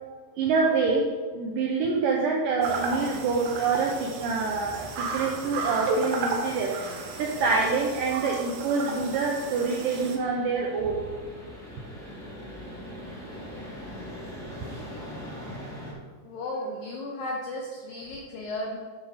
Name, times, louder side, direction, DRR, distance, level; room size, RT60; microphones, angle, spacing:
voice 1, 0.4-1.0 1.3-6.7 7.2-11.0, right 4 dB, 90° right, -1 dB, 1.9 m, -26 dB
sound 1, 2.6-15.9, equal, ahead, 0.9 m, -43 dB
sound 2, 2.6-10.2, right 3 dB, 70° right, 2.5 m, -33 dB
voice 2, 16.2-18.8, left 1 dB, 75° left, -1 dB, 2.2 m, -34 dB
12.0 x 4.8 x 4.8 m, 1.5 s
omnidirectional pair, 5.0 m